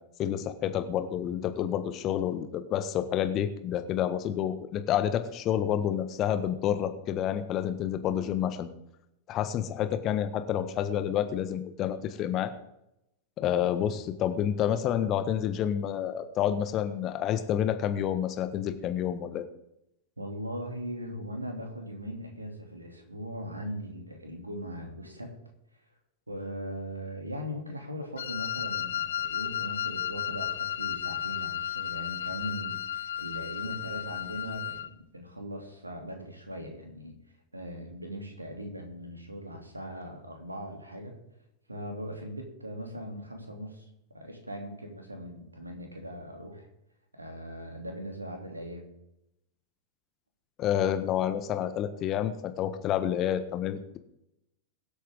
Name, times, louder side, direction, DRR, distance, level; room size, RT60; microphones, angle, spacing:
voice 1, 0.2-8.7 9.3-12.5 13.4-19.4 50.6-54.0, left 10 dB, 35° left, 10 dB, 1.4 m, -29 dB
voice 2, 20.2-25.4 26.3-37.2 37.5-41.2 41.7-43.9 44.1-46.7 47.1-48.8, equal, 85° right, 2 dB, 2.7 m, -39 dB
Wind instrument woodwind instrument, 28.2-34.9, left 10 dB, 65° left, 0.5 m, -33 dB
22.5 x 8.4 x 3.7 m, 0.84 s
figure-of-eight pair, 90°, 0 cm